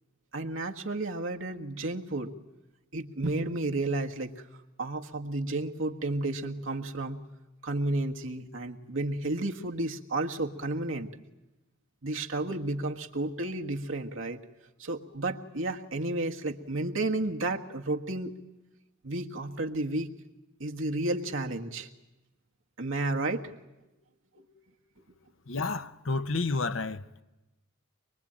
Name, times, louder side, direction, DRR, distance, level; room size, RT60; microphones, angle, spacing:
voice 1, 0.3-2.3 2.9-4.4 4.8-7.2 7.6-11.1 12.0-14.4 14.8-18.3 19.0-20.1 20.6-21.9 22.8-23.5 24.3-24.5, right 2 dB, 75° right, 1.5 m, -32 dB
voice 2, 25.5-27.0, left 3 dB, 75° left, 0.9 m, -30 dB
23.5 x 23.0 x 8.7 m
head